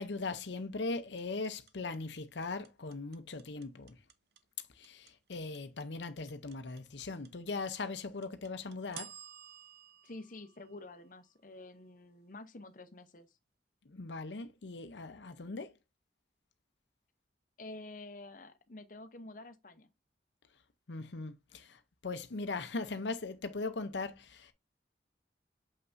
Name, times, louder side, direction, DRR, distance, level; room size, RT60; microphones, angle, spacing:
voice 1, 0.0-4.0 4.8-9.1 13.9-15.7 20.9-24.5, left 3 dB, 80° left, 0.7 m, -39 dB
sound 1, 1.2-11.3, right 9 dB, 60° right, 0.8 m, -53 dB
voice 2, 10.0-13.4 17.6-19.9, left 2 dB, 50° left, 0.8 m, -49 dB
6.7 x 5.6 x 2.6 m
head